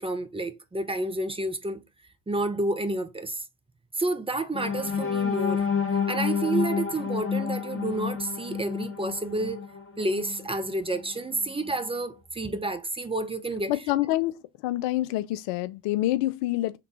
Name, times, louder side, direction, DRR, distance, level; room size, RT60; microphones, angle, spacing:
voice 1, 0.0-1.8 2.3-3.4 4.0-5.7 6.1-9.7 10.0-13.8, right 2 dB, 10° right, 0.7 m, -30 dB
sound 1, 4.5-10.5 11.0-11.1 11.5-11.7, left 6 dB, 30° left, 1.2 m, -29 dB
voice 2, 13.7-14.3 14.6-16.8, left 16 dB, 65° left, 0.5 m, -26 dB
3.8 x 3.3 x 2.9 m
hypercardioid pair, 50°, 45 cm